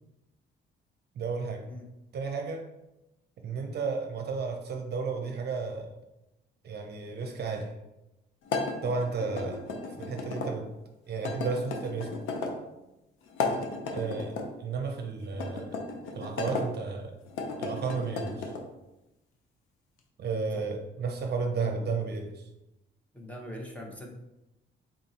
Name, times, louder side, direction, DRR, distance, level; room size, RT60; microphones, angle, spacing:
voice 1, 1.2-1.6 2.1-2.7 3.4-5.9 6.6-7.7 8.8-9.7 10.0-10.7 11.1-12.1 13.9-15.7 16.1-17.1 17.6-18.5 20.2-22.5, right 4 dB, 55° right, 4 dB, 0.6 m, -33 dB
sound 1, 8.5-10.5 11.2-12.5 13.3-14.5 15.3-16.6 17.2-18.6, left 3 dB, 90° left, 0.6 m, -34 dB
voice 2, 23.1-24.1, equal, 5° left, 0 dB, 0.9 m, -42 dB
3.7 x 2.7 x 4.2 m, 0.94 s
cardioid pair, 90°, 20 cm